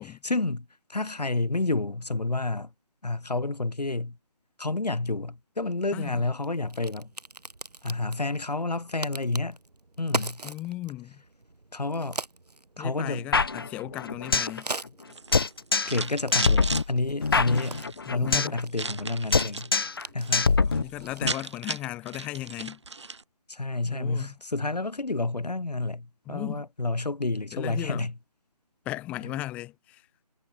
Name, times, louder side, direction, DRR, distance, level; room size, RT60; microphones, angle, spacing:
voice 1, 0.0-2.7 3.0-4.2 4.6-7.1 7.8-9.6 10.0-10.4 11.7-12.2 12.8-13.2 15.9-17.8 18.1-19.7 20.1-20.5 23.5-28.1, left 2 dB, 85° left, 4.4 m, -29 dB
Crack, 5.7-21.8, right 2 dB, 80° right, 7.2 m, -42 dB
voice 2, 5.9-6.3 10.4-11.2 12.8-14.7 18.1-18.6 20.7-22.8 23.8-24.4 26.3-26.7 27.5-28.1 28.8-30.0, left 16 dB, 5° left, 4.4 m, -36 dB
sound 1, 13.3-14.6 14.9-15.0 15.3-16.0 16.3-18.6 18.9-19.1 19.3-20.0 20.3-21.3, left 4 dB, 35° left, 1.5 m, -24 dB
sound 2, 15.1-16.9 17.5-18.0 18.7-19.7 20.1-20.5 20.8-20.9 21.0-23.2, right 4 dB, 45° right, 5.3 m, -36 dB
figure-of-eight pair, 175°, 20 cm